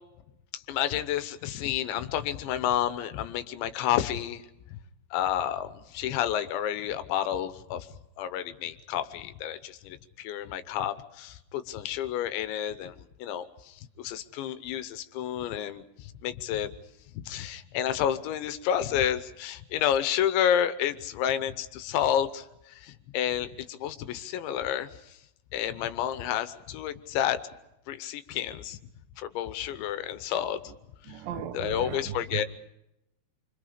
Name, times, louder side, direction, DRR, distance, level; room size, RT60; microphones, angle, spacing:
voice 1, 0.5-4.4 5.1-7.9 8.2-12.9 13.2-16.7 17.3-25.2 25.5-27.4 27.9-28.8 29.2-30.6 31.0-31.2 31.5-32.5, left 10 dB, 80° left, 3.3 m, -30 dB
voice 2, 31.1-32.0, right 10 dB, 80° right, 3.6 m, -37 dB
29.5 x 25.0 x 5.1 m
omnidirectional pair, 5.3 m